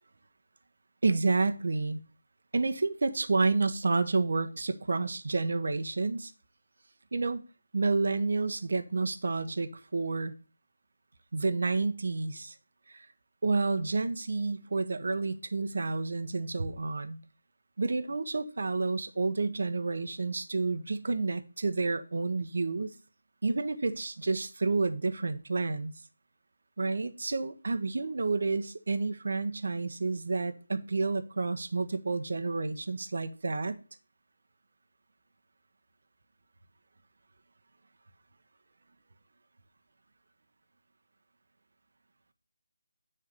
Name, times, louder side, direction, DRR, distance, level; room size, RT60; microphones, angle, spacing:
voice 1, 1.0-2.0 2.5-6.3 7.1-7.4 7.7-10.3 11.3-12.5 12.9-13.1 13.4-17.2 17.8-22.9 23.4-25.9 26.8-33.8, right 3 dB, 60° right, 1.1 m, -30 dB
9.9 x 3.7 x 6.8 m
figure-of-eight pair, 165°, 0 cm